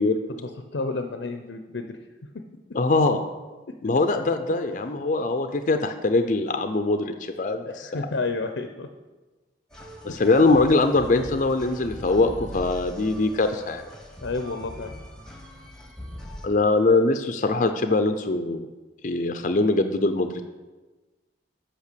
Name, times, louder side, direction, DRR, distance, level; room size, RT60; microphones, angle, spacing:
voice 1, 0.3-2.0 7.7-8.9 10.1-10.2 14.2-14.9, left 3 dB, 90° left, 7 dB, 0.7 m, -31 dB
voice 2, 2.7-3.2 3.8-8.0 10.0-13.8 16.4-18.7 19.0-20.4, left 3 dB, 45° left, 7 dB, 0.5 m, -22 dB
sound 1, 9.7-16.5, equal, 5° left, 1.1 m, -41 dB
8.2 x 5.7 x 6.8 m, 1.2 s
head